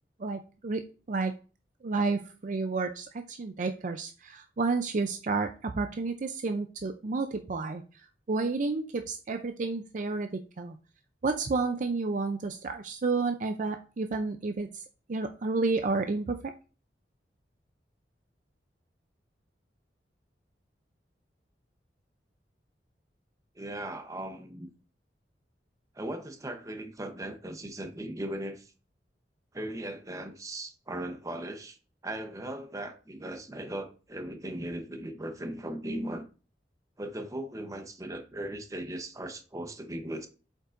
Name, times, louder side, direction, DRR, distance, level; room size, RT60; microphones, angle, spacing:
voice 1, 0.2-1.3 1.8-7.8 8.3-10.8 11.2-14.8 15.1-16.5, right 3 dB, 45° right, 0.4 m, -31 dB
voice 2, 23.6-24.7 26.0-28.7 29.5-31.8 32.0-36.2 37.0-40.3, right 1 dB, 20° right, 0.9 m, -38 dB
7.6 x 5.3 x 2.5 m
head